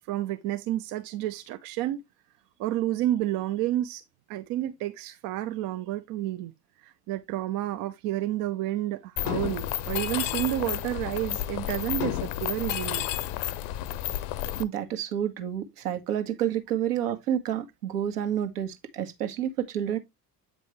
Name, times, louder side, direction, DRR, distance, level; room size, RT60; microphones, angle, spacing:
voice 1, 0.1-2.0 2.6-4.0 4.3-6.5 6.8-13.1, right 14 dB, 45° right, 0.7 m, -30 dB
Mechanisms, 9.2-14.6, left 13 dB, 50° left, 0.8 m, -31 dB
voice 2, 14.6-20.0, right 10 dB, 65° right, 1.5 m, -29 dB
8.5 x 5.3 x 3.1 m
figure-of-eight pair, 65°, 49 cm